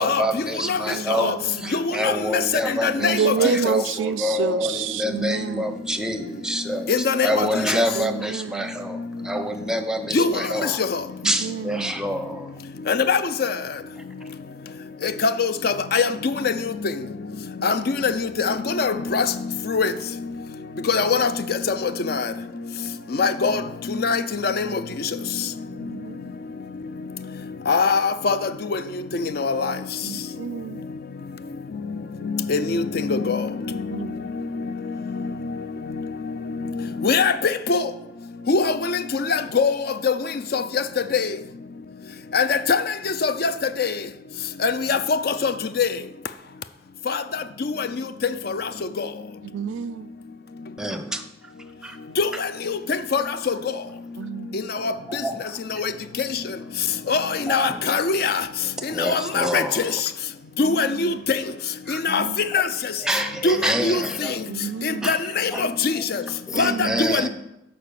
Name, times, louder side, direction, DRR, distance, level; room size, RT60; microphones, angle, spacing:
voice 1, 0.0-1.3 1.6-10.8 11.2-12.5 14.0-14.1 50.8-51.2 51.8-52.0 54.8-55.6 57.3-58.1 58.9-60.0 61.9-62.0 63.0-64.4 65.0-65.2 65.5-65.7 66.0-66.1 66.5-67.3, equal, 5° right, 0.6 m, -27 dB
voice 2, 0.8-1.9 3.0-5.7 7.3-7.5 7.9-8.7 11.2-12.0 17.6-17.8 25.7-26.3 30.0-30.8 33.9-34.2 49.4-50.1 54.2-54.6 60.6-61.2 62.1-62.4 64.5-65.1 66.5-67.1, right 6 dB, 85° right, 0.4 m, -29 dB
voice 3, 2.0-2.4 2.8-3.3 6.9-7.3 10.1-10.3 12.9-13.5 15.0-16.1 17.6-17.8 18.0-18.1 18.4-19.2 19.7-19.9 20.9-21.3 22.1-22.2 23.2-23.6 24.0-24.7 27.7-28.4 29.4-29.7 32.5-32.8 33.1-33.5 37.0-37.3 37.7-37.8 38.5-39.0 39.3-39.7 40.0-40.1 40.5-40.6 41.1-41.3 42.3-42.8 43.2-43.5 43.8-43.9 44.6-45.0 45.4-45.5 45.8-45.9 52.2-52.3 53.1-53.2 53.5-53.6 57.1-58.4 59.1-59.6 60.6-61.1 62.0-62.2 62.5-62.6 63.4-63.6 63.8-64.0 65.1-65.9 66.6-67.3, left 5 dB, 55° left, 0.5 m, -21 dB
8.5 x 5.4 x 6.8 m
head